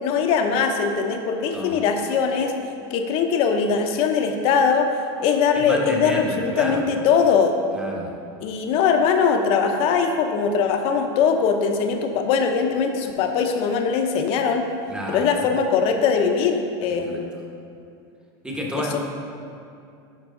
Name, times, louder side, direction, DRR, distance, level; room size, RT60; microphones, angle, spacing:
voice 1, 0.0-2.5 2.9-4.9 5.2-7.6 8.4-14.6 15.1-17.3, left 6 dB, 45° left, 5 dB, 0.8 m, -21 dB
voice 2, 1.5-1.8 5.5-6.9 7.7-8.1 14.9-15.5 16.9-17.2 18.4-19.0, equal, 5° right, -1 dB, 1.0 m, -30 dB
11.0 x 4.8 x 3.8 m, 2.5 s
supercardioid pair, 140°, 13 cm